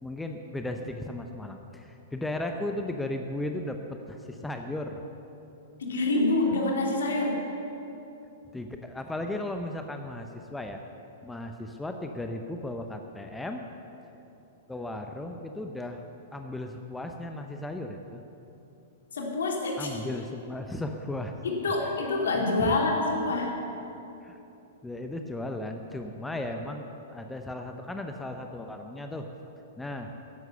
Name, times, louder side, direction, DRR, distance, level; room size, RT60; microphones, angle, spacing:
voice 1, 0.0-5.0 8.5-10.8 11.2-13.6 14.7-16.0 16.3-18.2 19.8-21.4 22.3-22.7 24.2-24.4 24.8-29.3 29.8-30.1, left 1 dB, 5° left, 5 dB, 0.8 m, -36 dB
voice 2, 5.8-7.4 19.1-20.0 21.4-23.5, left 2 dB, 65° left, 0 dB, 2.7 m, -26 dB
15.0 x 11.0 x 6.8 m, 2.9 s
figure-of-eight pair, 105°, 0 cm